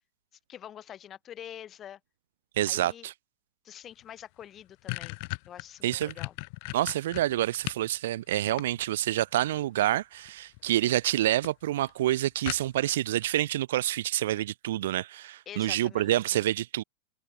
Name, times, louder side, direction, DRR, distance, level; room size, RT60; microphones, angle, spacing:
voice 1, 0.5-2.0 2.7-3.1 3.6-5.2 5.5-6.4 15.5-16.4, left 10 dB, 30° left, 3.6 m, -46 dB
voice 2, 2.6-3.1 5.8-6.1 6.7-16.8, right 14 dB, 55° right, 0.5 m, -27 dB
sound 1, 4.0-4.1 4.4-7.9 8.3-9.2 10.3-10.7 11.0-11.1 11.4-11.5 11.8-11.9 12.5-13.0, left 32 dB, 45° left, 0.5 m, -37 dB
figure-of-eight pair, 90°, 0 cm